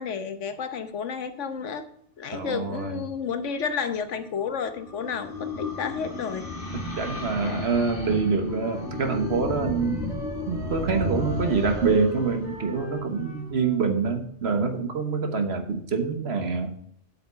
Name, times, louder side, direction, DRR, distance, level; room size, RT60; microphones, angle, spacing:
voice 1, 0.0-1.9 2.2-6.5 7.4-7.8, left 6 dB, 75° left, 9 dB, 1.3 m, -31 dB
voice 2, 2.3-3.0 6.7-10.0 10.5-16.7, right 4 dB, 60° right, 7 dB, 1.4 m, -26 dB
sound 1, 4.0-13.6, left 2 dB, 45° left, 2.6 m, -34 dB
Wind instrument woodwind instrument, 8.5-13.8, left 2 dB, 5° right, 2.4 m, -40 dB
8.4 x 5.8 x 6.7 m, 0.66 s
omnidirectional pair, 1.2 m